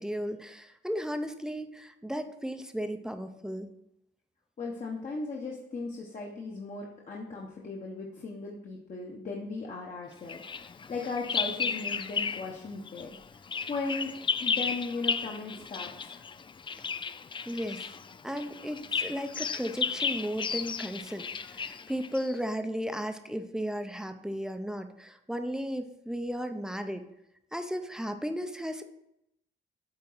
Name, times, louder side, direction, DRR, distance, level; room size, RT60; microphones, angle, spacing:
voice 1, 0.0-3.7 17.5-17.9 18.2-27.0 27.5-28.8, equal, 5° right, 7 dB, 0.7 m, -35 dB
voice 2, 4.6-13.2 13.7-14.1 14.4-16.3, left 3 dB, 40° left, -3 dB, 1.2 m, -37 dB
Bird vocalization bird call bird song, 10.3-12.6 12.9-22.4, left 5 dB, 25° left, 0.3 m, -34 dB
9.0 x 3.8 x 5.6 m, 0.83 s
cardioid pair, 90°, 20 cm